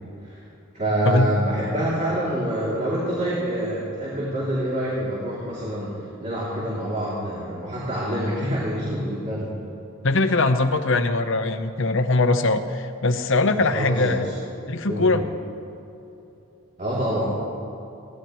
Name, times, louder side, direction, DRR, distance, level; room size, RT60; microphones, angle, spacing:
voice 1, 0.7-9.5 13.6-14.2 14.8-15.2 16.8-17.3, right 1 dB, 35° right, -7 dB, 3.0 m, -26 dB
voice 2, 10.0-14.3 14.7-15.2, left 2 dB, 65° left, 8 dB, 0.9 m, -21 dB
22.0 x 16.5 x 3.1 m, 3.0 s
head